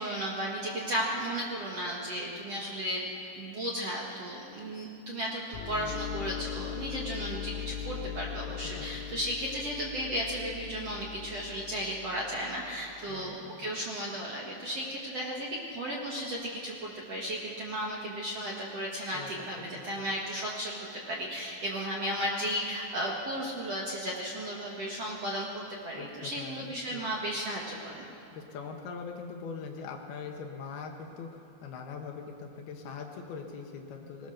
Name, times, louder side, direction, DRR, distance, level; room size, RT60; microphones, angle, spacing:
voice 1, 0.0-3.0 3.4-25.5 25.8-28.1, equal, 55° right, -3 dB, 1.7 m, -34 dB
sound 1, 5.5-13.1, left 10 dB, 90° left, 3.7 m, -40 dB
voice 2, 8.6-9.0 13.1-13.7 19.1-20.0 26.0-27.0 28.3-34.3, left 5 dB, 65° left, 2 dB, 2.8 m, -42 dB
20.5 x 20.0 x 6.6 m, 2.6 s
omnidirectional pair, 5.7 m